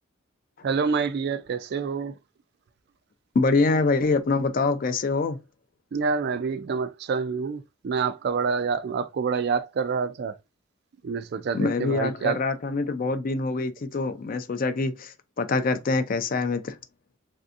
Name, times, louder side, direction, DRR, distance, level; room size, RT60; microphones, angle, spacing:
voice 1, 0.6-2.1 5.9-10.4 11.0-12.4, right 5 dB, 50° right, 0.3 m, -27 dB
voice 2, 3.4-5.4 11.5-16.8, left 3 dB, 45° left, 0.4 m, -25 dB
3.3 x 2.6 x 2.4 m
head